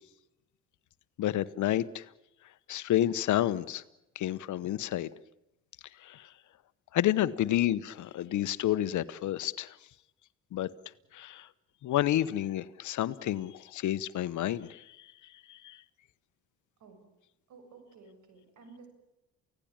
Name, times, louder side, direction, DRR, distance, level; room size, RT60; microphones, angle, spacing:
voice 1, 1.2-2.0 2.7-3.8 4.2-5.1 6.0-6.2 6.9-9.7 10.5-10.7 11.1-11.5 11.8-14.8 15.5-15.8, left 13 dB, 75° left, 16 dB, 1.1 m, -30 dB
voice 2, 17.5-18.9, right 4 dB, 75° right, 7 dB, 7.5 m, -54 dB
29.0 x 17.0 x 8.9 m, 0.90 s
cardioid pair, 90°, 30 cm